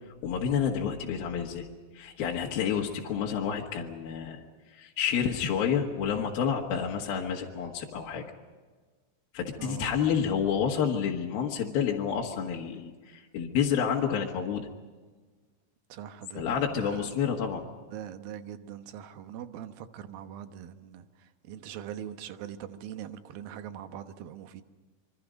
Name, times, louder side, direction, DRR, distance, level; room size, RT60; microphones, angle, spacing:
voice 1, 0.2-1.6 1.9-4.4 4.7-8.2 9.3-14.7 16.3-17.6, left 7 dB, 60° left, -1 dB, 3.2 m, -29 dB
voice 2, 9.6-9.9 15.9-17.1 17.9-24.6, right 10 dB, 70° right, 8 dB, 2.5 m, -42 dB
27.0 x 24.5 x 5.3 m, 1.4 s
omnidirectional pair, 5.1 m